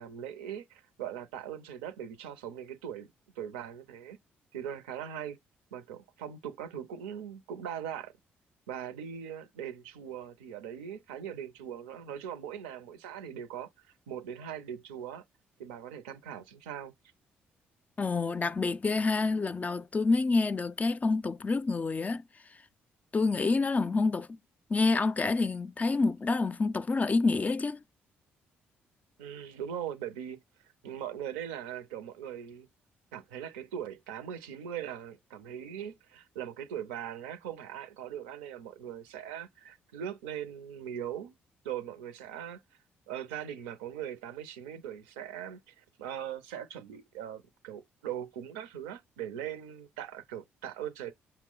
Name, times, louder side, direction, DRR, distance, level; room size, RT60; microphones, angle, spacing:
voice 1, 0.0-4.2 4.5-5.4 5.7-8.1 8.7-13.7 14.1-15.2 15.6-16.9 29.2-30.4 30.8-32.7 33.1-41.4 41.6-42.6 43.1-51.1, right 9 dB, 90° right, 0.5 m, -40 dB
voice 2, 18.0-22.2 23.1-24.3 24.7-27.8, left 3 dB, 30° left, 0.4 m, -27 dB
5.8 x 2.1 x 3.7 m
hypercardioid pair, 50°, 5 cm